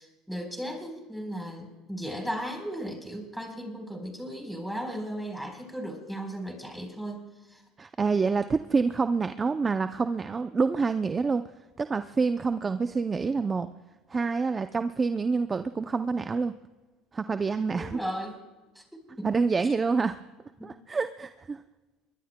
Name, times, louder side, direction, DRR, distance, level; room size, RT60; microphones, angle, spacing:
voice 1, 0.0-7.6 17.7-18.4 18.7-19.3, equal, ahead, 3 dB, 3.9 m, -36 dB
voice 2, 7.8-11.4 11.8-13.7 14.1-16.5 17.1-18.0 19.2-20.2 20.6-21.6, right 4 dB, 20° right, 10 dB, 0.4 m, -27 dB
27.5 x 22.0 x 2.2 m, 1.2 s
supercardioid pair, 120°, 0 cm